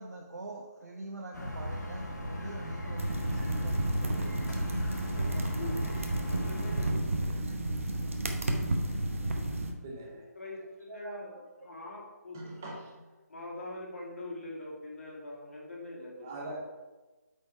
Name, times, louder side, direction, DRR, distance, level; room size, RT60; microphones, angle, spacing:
voice 1, 0.0-4.6 10.9-11.4, right 2 dB, 75° right, -1 dB, 1.1 m, -44 dB
sound 1, 1.3-6.9, left 1 dB, 80° left, 1.9 m, -37 dB
sound 2, 3.0-9.7, right 1 dB, 50° right, 0.9 m, -32 dB
voice 2, 5.0-7.3 10.4-12.8 13.3-16.5, left 2 dB, 50° left, -3 dB, 2.1 m, -43 dB
voice 3, 8.4-8.9 9.8-10.3 12.3-12.9 16.2-16.6, right 2 dB, 10° right, -3 dB, 0.5 m, -43 dB
8.3 x 4.6 x 4.6 m, 1.2 s
hypercardioid pair, 180°, 9 cm